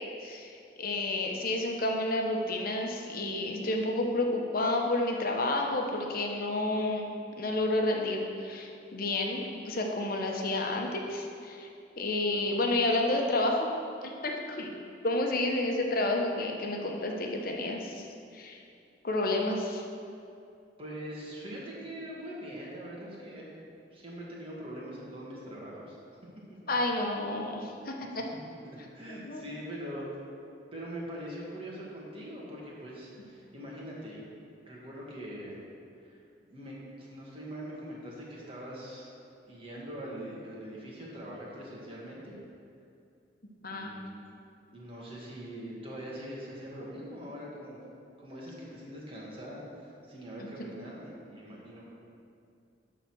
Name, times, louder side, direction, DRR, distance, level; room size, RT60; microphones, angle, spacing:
voice 1, 0.2-7.1 7.4-11.7 12.0-13.7 14.2-14.7 15.0-18.0 18.3-18.6 19.0-19.8 26.7-28.2 29.1-29.4 43.6-43.9, left 2 dB, 55° left, 1 dB, 1.0 m, -30 dB
voice 2, 20.8-23.5 23.9-26.0 28.1-28.2 28.5-30.1 30.7-34.2 34.7-35.6 36.0-36.2 36.5-39.1 39.5-42.4 43.7-44.2 44.7-47.8 48.2-51.9, equal, 30° right, -5 dB, 1.8 m, -42 dB
11.0 x 4.0 x 6.2 m, 2.5 s
head